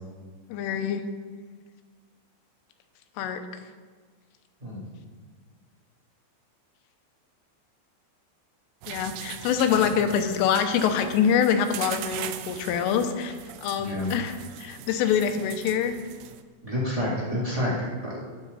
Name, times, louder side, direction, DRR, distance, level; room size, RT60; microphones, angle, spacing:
voice 1, 0.5-1.0 3.2-3.4 8.9-13.4 13.6-16.0, left 8 dB, 85° left, 7 dB, 3.4 m, -25 dB
sound 1, 8.8-16.4, right 11 dB, 80° right, 2.8 m, -40 dB
voice 2, 13.8-14.1 16.6-18.2, left 1 dB, 10° right, -7 dB, 2.2 m, -29 dB
19.0 x 7.4 x 4.1 m, 1.5 s
omnidirectional pair, 5.7 m